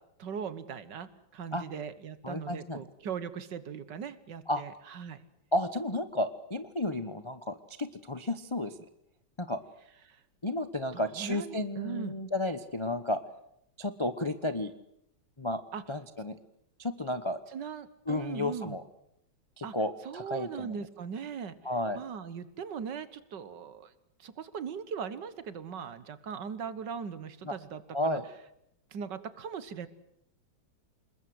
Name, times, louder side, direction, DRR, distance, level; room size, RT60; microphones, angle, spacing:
voice 1, 0.2-5.2 10.1-10.2 10.9-12.2 15.7-15.8 17.5-18.8 19.6-19.7 20.1-21.5 21.9-23.9 24.2-28.2 28.9-29.9, right 7 dB, 60° right, 14 dB, 1.8 m, -39 dB
voice 2, 2.2-2.8 4.5-4.6 5.5-8.7 9.4-9.6 10.4-13.2 13.8-14.7 15.4-15.6 15.9-16.4 16.8-17.4 18.1-18.8 19.6-20.8 21.6-22.0 27.4-27.5 27.9-28.2, left 1 dB, 30° left, 10 dB, 0.5 m, -32 dB
27.5 x 21.0 x 7.9 m, 0.78 s
omnidirectional pair, 2.2 m